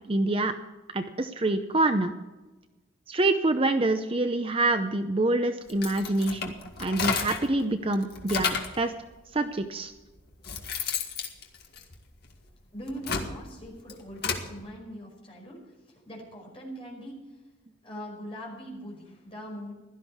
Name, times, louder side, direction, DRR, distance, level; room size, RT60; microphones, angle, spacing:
voice 1, 0.1-0.5 0.9-2.1 3.1-6.5 6.8-8.9 9.3-9.9, right 2 dB, 30° right, 8 dB, 0.6 m, -26 dB
sound 1, 5.7-7.5 7.9-8.8 9.6-9.7 10.2-12.3 12.8-14.5, left 5 dB, 50° left, 1.9 m, -32 dB
voice 2, 12.7-17.4 17.8-19.7, equal, 30° left, -2 dB, 5.3 m, -41 dB
16.5 x 12.5 x 4.7 m, 1.1 s
head